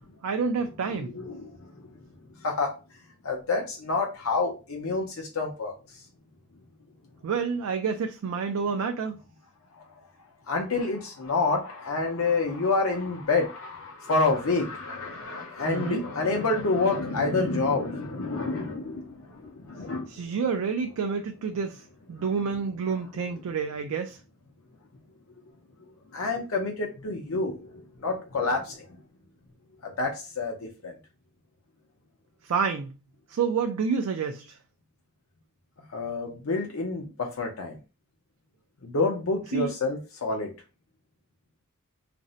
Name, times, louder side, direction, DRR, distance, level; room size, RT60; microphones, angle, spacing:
voice 1, 0.2-1.1 7.2-9.2 15.7-16.0 20.1-24.2 32.4-33.0 33.3-34.6 39.5-39.7, right 5 dB, 80° right, 0.3 m, -29 dB
voice 2, 1.0-1.8 2.4-2.7 3.2-5.7 9.8-9.9 10.5-20.3 26.1-28.9 30.0-30.9 35.9-37.8 38.8-40.5, left 3 dB, 75° left, 0.6 m, -28 dB
2.5 x 2.1 x 3.8 m
head